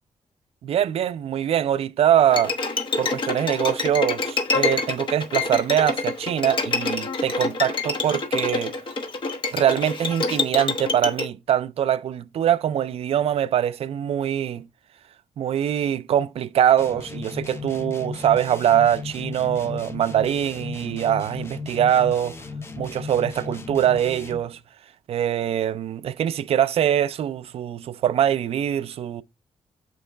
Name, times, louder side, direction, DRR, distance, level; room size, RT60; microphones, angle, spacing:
voice 1, 0.6-2.5 3.0-8.8 9.5-14.7 15.4-22.4 22.8-24.6 25.1-29.2, right 10 dB, 60° right, 0.4 m, -23 dB
Bowed string instrument, 2.3-11.3, left 3 dB, 45° left, 1.0 m, -26 dB
sound 1, 16.8-24.5, left 4 dB, 20° left, 0.6 m, -36 dB
7.2 x 4.5 x 3.3 m
wide cardioid pair, 170°, 12 cm